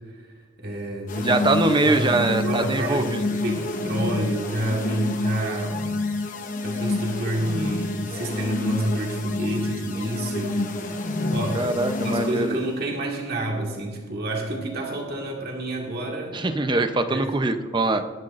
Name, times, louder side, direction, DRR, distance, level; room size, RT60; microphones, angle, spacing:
voice 1, 0.6-1.4 1.8-5.9 6.6-10.6 11.3-11.7 12.0-16.4 17.1-17.3, right 1 dB, 50° right, -1 dB, 1.9 m, -29 dB
sound 1, 1.1-12.6, left 2 dB, 40° left, 1.0 m, -28 dB
voice 2, 1.2-3.2 11.5-12.6 16.3-18.0, right 2 dB, 25° right, 8 dB, 0.7 m, -23 dB
21.5 x 10.5 x 2.6 m, 1.5 s
head